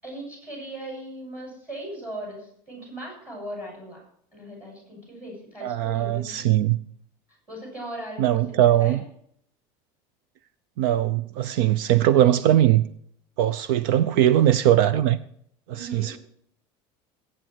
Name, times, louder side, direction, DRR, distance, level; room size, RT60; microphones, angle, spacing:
voice 1, 0.0-4.0 4.3-6.4 7.5-9.0 15.7-16.1, right 1 dB, 10° right, 6.9 m, -38 dB
voice 2, 5.6-6.8 8.2-9.0 10.8-12.9 13.4-15.2 15.8-16.2, right 12 dB, 70° right, 0.7 m, -20 dB
21.5 x 9.0 x 4.6 m
cardioid pair, 175°, 12 cm